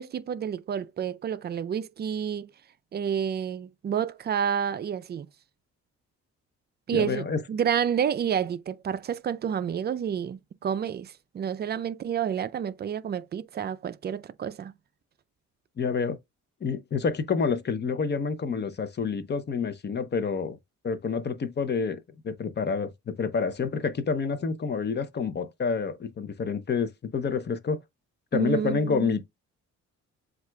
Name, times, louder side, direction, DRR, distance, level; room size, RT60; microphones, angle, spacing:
voice 1, 0.0-2.5 2.9-5.3 6.9-14.7 28.3-29.2, right 8 dB, 35° right, 0.4 m, -29 dB
voice 2, 6.9-7.4 15.8-16.2 16.6-20.6 20.8-27.8 28.3-29.2, left 5 dB, 35° left, 0.7 m, -28 dB
7.4 x 2.5 x 2.2 m
cardioid pair, 90°, 30 cm